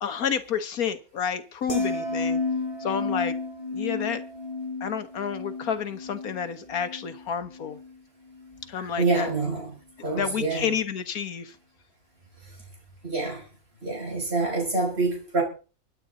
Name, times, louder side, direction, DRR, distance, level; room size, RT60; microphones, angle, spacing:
voice 1, 0.0-2.4 2.8-3.3 3.7-4.2 4.8-7.8 8.7-9.3 10.1-11.5, left 7 dB, 85° left, 1.7 m, -30 dB
sound 1, 1.7-8.0 8.3-8.6, left 3 dB, 20° left, 3.1 m, -32 dB
voice 2, 8.7-10.7 12.4-12.6 13.0-13.4 13.8-15.4, right 3 dB, 45° right, 6.3 m, -27 dB
25.0 x 9.2 x 3.9 m
omnidirectional pair, 1.5 m